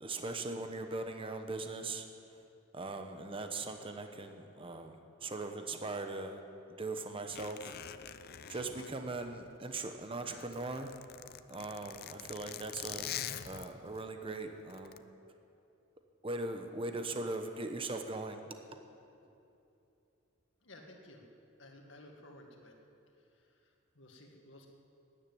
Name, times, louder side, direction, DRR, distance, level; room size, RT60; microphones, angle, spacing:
voice 1, 0.0-2.4 2.7-6.4 6.8-7.8 8.5-10.9 11.5-15.0 16.2-18.4 18.7-18.8, right 2 dB, 30° right, 6 dB, 0.9 m, -40 dB
Zipper (clothing), 7.3-9.7 10.1-14.0 14.7-15.0, left 10 dB, 50° left, 0.5 m, -45 dB
voice 2, 20.6-21.2 21.6-22.8 23.2-24.7, left 1 dB, 70° left, 2 dB, 2.0 m, -55 dB
13.0 x 10.0 x 9.1 m, 2.8 s
head